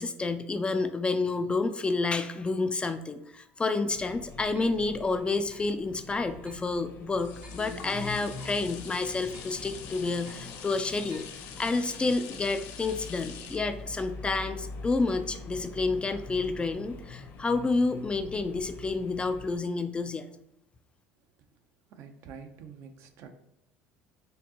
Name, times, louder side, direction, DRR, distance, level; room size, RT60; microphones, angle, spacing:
voice 1, 0.0-11.3 11.6-20.3, left 3 dB, 20° left, 9 dB, 0.3 m, -29 dB
sound 1, 3.9-19.5, left 3 dB, 45° left, 0.8 m, -44 dB
sound 2, 4.6-4.8 5.5-5.7 6.5-6.7 7.4-7.7 8.4-8.7 9.3-9.6 10.3-10.5 11.1-11.4, right 2 dB, 25° right, 0.7 m, -55 dB
sound 3, 6.6-15.9 16.4-16.5, left 7 dB, 70° left, 0.6 m, -46 dB
voice 2, 21.9-23.3, right 6 dB, 60° right, 6 dB, 0.6 m, -47 dB
4.4 x 2.7 x 2.8 m, 0.87 s
supercardioid pair, 95°, 5 cm